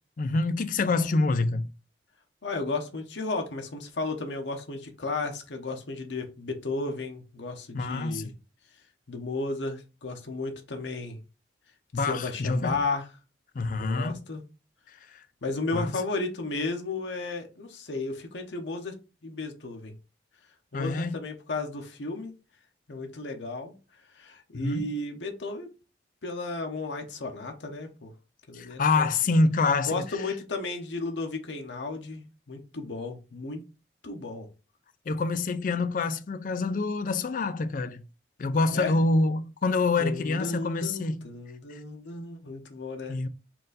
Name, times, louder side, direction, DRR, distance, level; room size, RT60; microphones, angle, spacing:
voice 1, 0.2-1.7 7.7-8.3 11.9-12.8 13.6-14.2 15.1-15.2 15.7-15.9 20.7-21.2 24.5-24.9 28.5-30.0 35.1-38.0 38.4-41.3 43.1-43.3, left 3 dB, 45° left, 0.4 m, -26 dB
voice 2, 2.4-8.3 9.1-11.2 11.9-13.1 13.6-14.4 15.4-19.9 20.7-22.3 22.9-23.7 24.1-25.7 26.2-28.1 28.5-29.1 29.9-33.6 34.0-34.5 38.7-38.9 40.0-43.2, left 3 dB, 90° left, 0.8 m, -34 dB
4.4 x 2.5 x 3.9 m
head